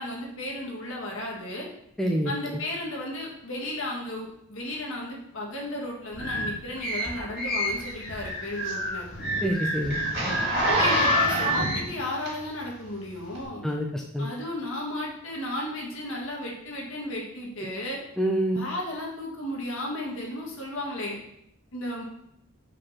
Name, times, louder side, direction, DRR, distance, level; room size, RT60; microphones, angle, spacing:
voice 1, 0.0-1.7 2.3-9.1 10.5-13.6 14.2-18.0 18.5-21.2 21.7-22.0, left 1 dB, 65° left, -2 dB, 1.8 m, -34 dB
voice 2, 2.0-2.3 9.4-10.0 13.6-14.3 18.2-18.6, right 1 dB, ahead, -1 dB, 0.5 m, -26 dB
sound 1, 6.1-11.8, equal, 40° left, 1.6 m, -29 dB
Zipper (clothing), 7.8-12.7 13.3-13.4, equal, 45° right, 2.5 m, -27 dB
5.3 x 4.3 x 5.6 m, 0.77 s
head